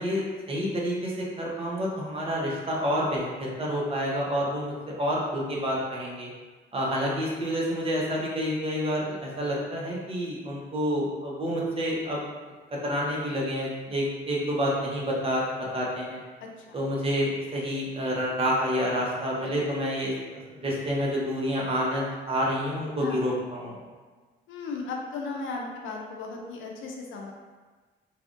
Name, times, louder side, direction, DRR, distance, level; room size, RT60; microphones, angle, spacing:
voice 1, 0.0-6.3 6.7-12.2 12.8-15.4 15.7-16.2 16.7-20.1 20.5-23.8, equal, 30° right, -4 dB, 0.8 m, -28 dB
voice 2, 23.0-23.3 24.5-27.3, left 3 dB, 75° left, 0 dB, 0.5 m, -36 dB
3.2 x 2.4 x 2.5 m, 1.3 s
cardioid pair, 90°, 20 cm